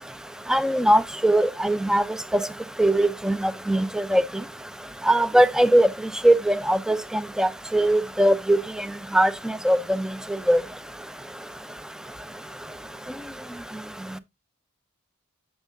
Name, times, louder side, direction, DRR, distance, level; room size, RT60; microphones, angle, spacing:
voice 1, 0.5-2.0 2.3-2.4 2.8-3.4 3.7-4.2 5.1-5.9 6.2-8.6 9.1-10.1 10.5-10.6, right 1 dB, 5° right, 0.4 m, -20 dB
9.2 x 7.1 x 2.5 m
head